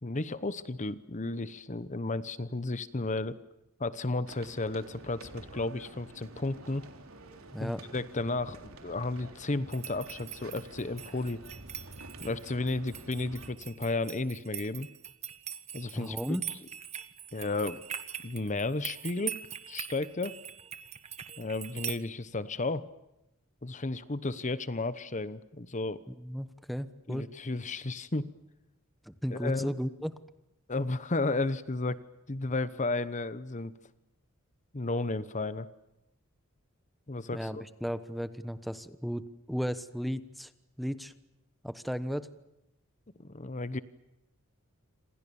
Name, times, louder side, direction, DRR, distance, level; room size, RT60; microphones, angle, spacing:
voice 1, 0.0-3.4 3.8-6.9 7.6-11.4 12.2-14.9 15.7-16.2 17.3-17.8 18.2-19.4 19.7-20.4 21.4-22.9 23.6-26.0 27.1-28.3 29.3-29.7 30.7-32.0 32.3-33.7 34.7-35.7 37.1-37.6 43.2-43.8, left 2 dB, 35° left, 15 dB, 1.0 m, -33 dB
sound 1, 4.3-13.5, right 2 dB, 80° right, 3.6 m, -50 dB
voice 2, 7.5-7.8 15.9-16.4 26.1-27.3 29.1-30.1 37.3-40.5 40.8-41.1 41.6-42.3, equal, ahead, 12 dB, 1.1 m, -35 dB
sound 2, 9.7-22.0, right 9 dB, 30° right, 1.5 m, -42 dB
28.0 x 27.0 x 7.1 m, 0.91 s
head